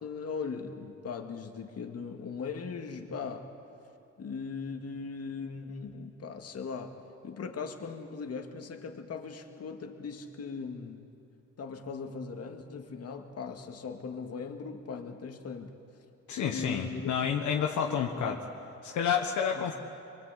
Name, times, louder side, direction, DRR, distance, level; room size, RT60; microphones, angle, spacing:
voice 1, 0.0-3.5 4.2-7.0 7.2-11.1 11.6-15.7 16.4-17.1 17.5-18.4 19.5-19.7, left 5 dB, 55° left, 4 dB, 2.2 m, -39 dB
voice 2, 16.3-18.4 18.8-19.7, left 7 dB, 75° left, 1 dB, 1.5 m, -29 dB
24.0 x 23.0 x 8.4 m, 2.7 s
cardioid pair, 90°, 30 cm